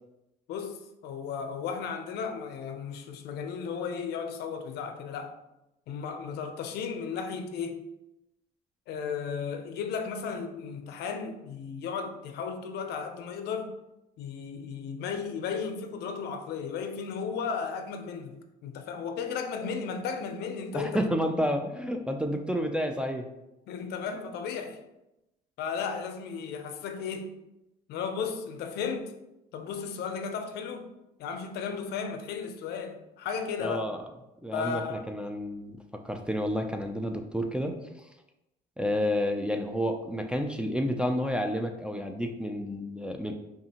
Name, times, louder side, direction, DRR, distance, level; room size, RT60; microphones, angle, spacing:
voice 1, 0.5-5.3 5.9-7.9 8.9-13.7 14.2-18.4 18.6-21.1 23.7-24.8 25.6-27.3 27.9-29.1 29.5-30.9 31.2-33.9 34.5-35.1, left 6 dB, 75° left, 7 dB, 0.5 m, -35 dB
voice 2, 20.7-23.3 33.6-34.0 34.4-37.8 38.8-43.3, equal, 5° right, 3 dB, 0.3 m, -30 dB
5.3 x 2.5 x 2.8 m, 0.92 s
cardioid pair, 110°, 17 cm